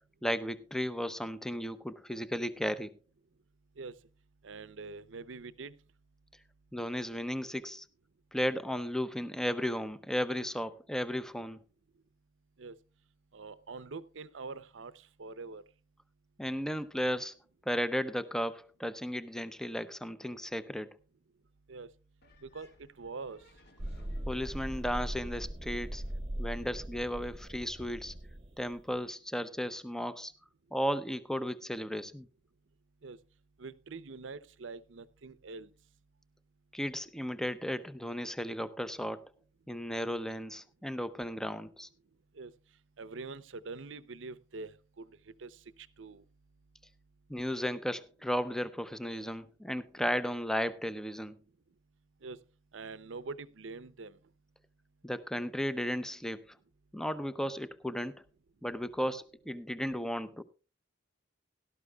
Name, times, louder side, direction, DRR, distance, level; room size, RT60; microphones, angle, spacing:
voice 1, 0.2-2.9 6.7-7.8 8.3-11.6 16.4-17.4 17.7-20.9 24.3-26.0 26.4-28.1 28.6-30.3 30.7-32.3 36.7-39.3 39.7-41.9 47.3-51.4 55.0-56.4 56.9-58.2 58.6-60.4, equal, 5° left, 0.6 m, -35 dB
voice 2, 4.4-5.8 12.6-12.8 13.3-15.6 21.7-21.9 22.4-23.4 33.0-33.2 33.6-35.7 42.3-42.5 43.0-45.1 45.4-46.2 52.2-52.4 52.7-54.2, right 4 dB, 80° right, 0.7 m, -44 dB
sound 1, 22.2-26.2, left 1 dB, 55° left, 1.9 m, -62 dB
sound 2, 23.8-28.9, right 1 dB, 30° right, 0.9 m, -40 dB
17.5 x 12.5 x 2.3 m
head